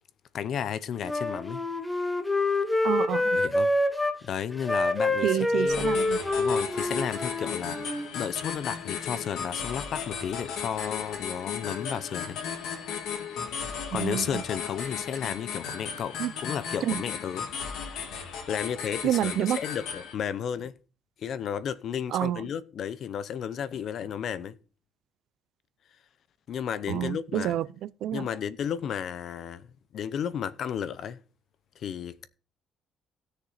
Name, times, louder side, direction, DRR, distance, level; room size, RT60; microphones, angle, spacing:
voice 1, 0.3-1.6 3.3-3.7 4.2-6.0 6.4-12.4 13.5-17.5 18.5-20.7 21.2-24.6 26.5-27.6 28.1-31.2 31.8-32.3, left 8 dB, 50° left, 0.7 m, -33 dB
Wind instrument woodwind instrument, 1.0-4.2 4.6-8.1, left 2 dB, 5° left, 0.9 m, -27 dB
voice 2, 2.8-3.4 5.2-6.2 13.9-14.4 16.2-16.3 16.8-17.0 19.0-19.6 22.1-22.4 26.9-28.3, right 11 dB, 65° right, 0.4 m, -28 dB
sound 1, 5.7-20.1, left 6 dB, 80° left, 3.0 m, -36 dB
16.0 x 6.7 x 4.1 m
cardioid pair, 160°, 0 cm